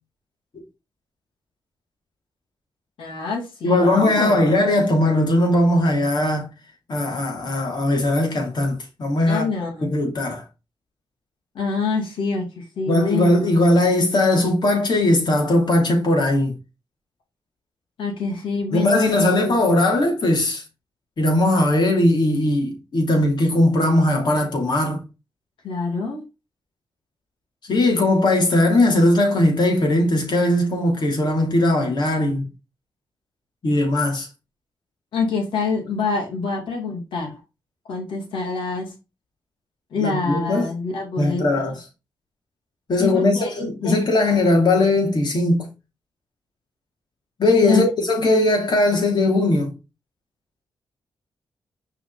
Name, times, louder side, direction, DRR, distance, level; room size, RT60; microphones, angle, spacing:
voice 1, 3.0-4.4 9.3-9.9 11.5-13.3 18.0-19.6 25.6-26.2 35.1-37.4 37.9-38.9 39.9-41.8 43.0-44.0 47.6-47.8, left 4 dB, 80° left, 2.5 m, -26 dB
voice 2, 3.6-6.5 6.9-9.5 9.8-10.4 12.9-16.5 18.7-20.6 21.2-25.0 27.7-32.5 33.6-34.3 40.0-40.7 41.2-41.8 42.9-45.7 47.4-49.7, left 1 dB, 60° left, 3.0 m, -19 dB
6.0 x 4.5 x 4.1 m
supercardioid pair, 50°, 8 cm